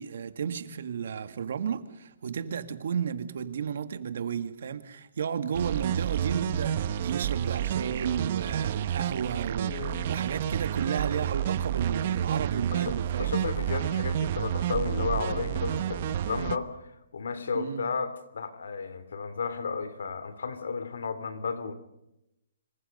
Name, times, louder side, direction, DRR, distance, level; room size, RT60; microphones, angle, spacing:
voice 1, 0.0-13.4 17.5-17.9, right 7 dB, 60° right, 1.8 m, -33 dB
sound 1, 5.5-16.6, right 10 dB, 40° right, 0.9 m, -30 dB
voice 2, 9.6-10.1 10.8-11.0 12.7-21.7, left 5 dB, 80° left, 2.9 m, -33 dB
26.0 x 23.5 x 5.4 m
hypercardioid pair, 165°, 0 cm